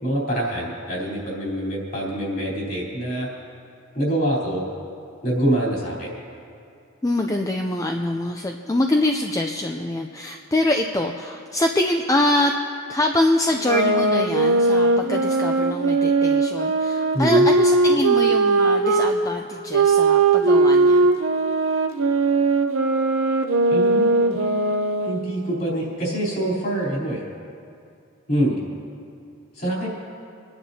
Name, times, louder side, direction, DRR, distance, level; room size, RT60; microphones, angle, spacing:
voice 1, 0.0-3.3 3.9-4.6 5.2-6.1 17.1-17.5 23.7-24.4 25.0-27.2 28.3-28.6 29.5-29.9, right 1 dB, 45° left, -5 dB, 3.6 m, -25 dB
voice 2, 7.0-12.5 12.9-21.1, left 1 dB, 15° left, 3 dB, 0.4 m, -24 dB
sound 1, 13.5-19.1 19.7-25.3, right 3 dB, 70° right, 0.7 m, -19 dB
29.5 x 10.0 x 2.8 m, 2.5 s
head